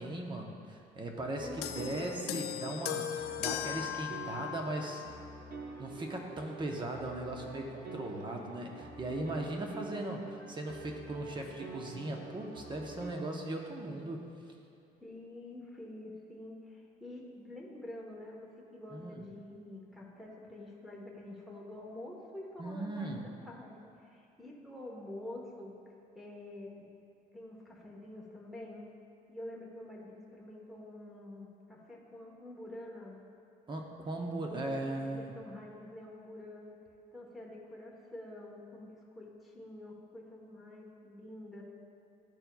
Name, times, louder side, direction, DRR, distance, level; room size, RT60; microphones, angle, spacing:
voice 1, 0.0-5.0 5.8-14.2 18.9-19.3 22.6-23.2 33.7-35.3, right 2 dB, 30° right, 1 dB, 0.9 m, -38 dB
voice 2, 1.4-2.0 15.0-25.8 26.1-26.8 27.3-28.9 29.3-33.2 34.4-36.8 37.1-41.6, left 1 dB, ahead, -4 dB, 1.1 m, -47 dB
sound 1, 1.4-13.1, right 3 dB, 55° right, 1.1 m, -47 dB
sound 2, 1.6-5.2 6.1-6.3, left 11 dB, 70° left, 0.4 m, -38 dB
12.0 x 4.3 x 2.3 m, 2.7 s
cardioid pair, 110°, 17 cm